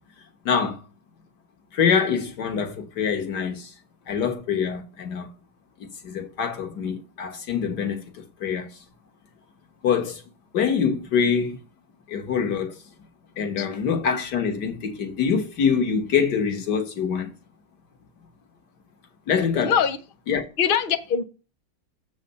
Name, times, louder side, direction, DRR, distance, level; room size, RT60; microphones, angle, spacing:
voice 1, 0.4-0.8 1.7-3.7 4.1-5.3 6.0-8.0 8.4-8.7 9.8-10.2 10.5-11.6 12.1-12.8 13.4-17.3 19.3-19.7 20.3-20.4, left 6 dB, 55° left, 1.7 m, -24 dB
voice 2, 19.6-20.0 20.6-21.2, left 7 dB, 85° left, 0.4 m, -22 dB
7.2 x 4.1 x 6.7 m
omnidirectional pair, 2.2 m